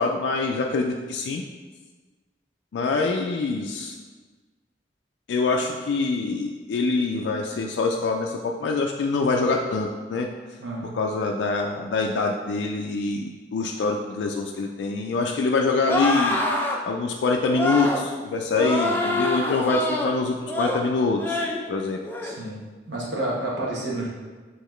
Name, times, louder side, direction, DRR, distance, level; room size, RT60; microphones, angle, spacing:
voice 1, 0.0-1.4 2.7-4.0 5.3-10.3 10.9-16.4 16.9-22.0, left 3 dB, 85° left, 1 dB, 0.3 m, -25 dB
voice 2, 10.6-10.9 22.2-22.6 22.9-24.1, right 1 dB, 80° right, -5 dB, 1.1 m, -29 dB
sound 1, 15.9-16.8 17.5-18.0 18.5-20.1 20.5-20.8 21.2-21.6 22.0-22.3, left 1 dB, 10° left, 0.4 m, -25 dB
5.6 x 3.0 x 3.1 m, 1.4 s
head